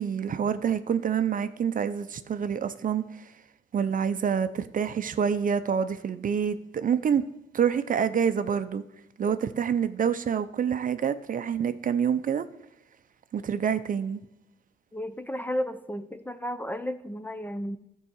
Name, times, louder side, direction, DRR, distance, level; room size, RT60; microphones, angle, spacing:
voice 1, 0.0-3.2 3.7-7.2 7.5-8.8 9.2-12.5 13.3-14.2, right 7 dB, 45° right, 0.6 m, -27 dB
voice 2, 14.9-17.8, equal, 10° left, 0.6 m, -33 dB
13.0 x 4.7 x 6.4 m
cardioid pair, 90°, 20 cm